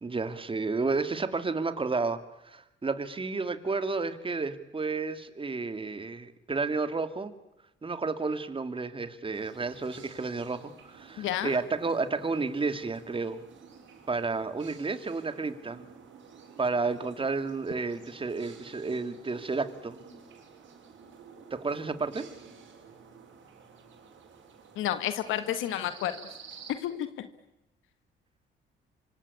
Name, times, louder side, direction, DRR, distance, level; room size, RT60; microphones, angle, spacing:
voice 1, 0.0-2.2 2.4-7.3 7.8-13.4 14.1-15.8 16.6-20.0 21.5-22.3, right 4 dB, 25° right, 11 dB, 2.5 m, -31 dB
sound 1, 9.3-26.7, right 6 dB, 75° right, 7.3 m, -52 dB
voice 2, 11.2-11.6 24.8-26.2 26.7-27.3, left 11 dB, 85° left, 11 dB, 1.8 m, -31 dB
25.5 x 25.5 x 8.7 m, 0.89 s
cardioid pair, 90°, 20 cm